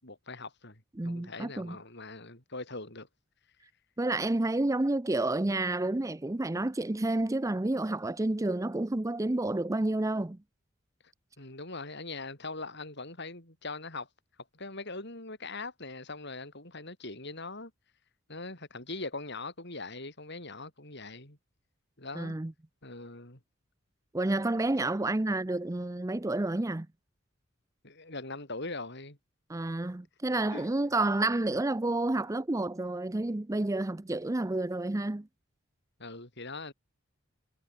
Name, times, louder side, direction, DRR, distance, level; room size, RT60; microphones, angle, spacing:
voice 1, 0.0-3.1 11.4-14.1 14.5-17.7 18.3-21.4 22.0-22.4 22.8-23.4 27.8-29.2 30.5-30.7 36.0-36.7, left 3 dB, 55° left, 7.6 m, -41 dB
voice 2, 1.0-1.8 4.0-10.4 22.1-22.5 24.1-26.9 29.5-35.3, right 2 dB, 15° right, 0.5 m, -30 dB
head